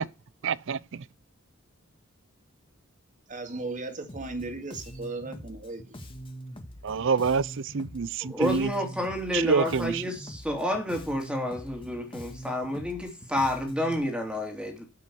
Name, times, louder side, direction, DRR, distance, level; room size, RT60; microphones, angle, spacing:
voice 1, 0.4-0.8 6.8-8.7 9.3-10.0, right 5 dB, 60° right, 0.5 m, -26 dB
voice 2, 3.3-6.1, right 3 dB, 40° right, 2.2 m, -36 dB
Bass guitar, 4.1-14.0, equal, 25° left, 1.7 m, -43 dB
voice 3, 8.2-14.8, left 1 dB, 5° right, 2.5 m, -30 dB
9.5 x 7.5 x 4.6 m
head